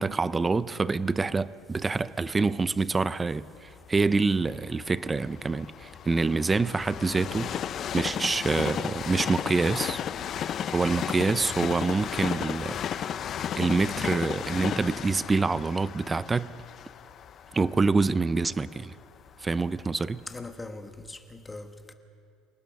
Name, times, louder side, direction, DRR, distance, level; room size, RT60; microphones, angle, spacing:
voice 1, 0.0-7.5 7.9-10.0 10.7-16.5 17.5-19.0 19.4-20.2, right 4 dB, 15° right, 0.4 m, -26 dB
Train, 3.7-19.7 20.3-20.4, left 9 dB, 35° left, 0.5 m, -34 dB
voice 2, 20.3-21.9, left 2 dB, 10° left, 1.2 m, -41 dB
27.5 x 18.5 x 5.8 m
cardioid pair, 150°, 0 cm